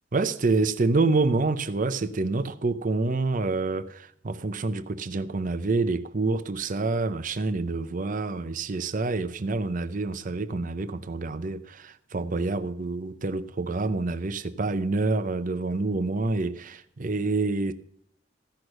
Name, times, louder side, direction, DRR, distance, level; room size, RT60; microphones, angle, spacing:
voice 1, 0.1-17.7, right 3 dB, 45° right, 0.6 m, -27 dB
14.5 x 6.2 x 6.5 m
head